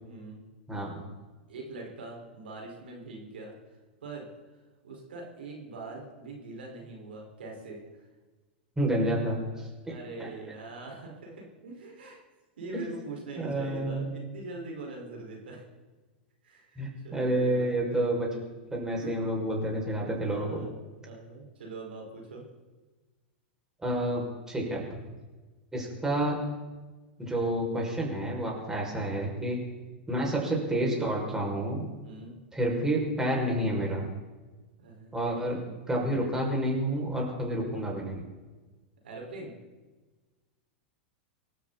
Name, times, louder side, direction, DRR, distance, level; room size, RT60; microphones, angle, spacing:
voice 1, 0.0-0.4 1.5-3.5 4.0-4.3 4.8-8.0 9.8-12.2 12.6-15.6 16.4-18.1 18.9-19.2 20.0-20.7 21.0-22.4 27.6-27.8 31.9-32.3 34.8-35.2 39.0-39.5, right 3 dB, 75° right, -1 dB, 5.0 m, -43 dB
voice 2, 0.7-1.0 8.8-9.7 10.2-10.3 12.7-12.8 13.4-14.1 16.8-18.3 18.7-20.6 23.8-25.0 25.7-26.4 27.2-29.6 30.1-31.8 32.5-34.1 35.1-35.6 35.9-38.2, right 1 dB, 10° right, -2 dB, 6.2 m, -29 dB
25.5 x 13.0 x 4.2 m, 1.3 s
hypercardioid pair, 100°, 6 cm